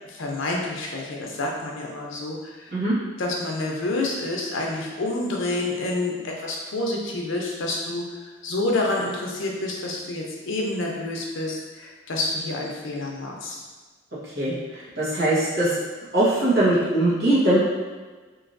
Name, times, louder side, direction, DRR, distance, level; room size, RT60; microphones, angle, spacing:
voice 1, 0.1-2.8 3.2-8.1 8.4-13.6, left 2 dB, 80° left, -1 dB, 0.6 m, -28 dB
voice 2, 15.0-15.7 16.1-17.6, right 1 dB, 55° right, -9 dB, 1.0 m, -20 dB
3.1 x 2.6 x 2.5 m, 1.4 s
head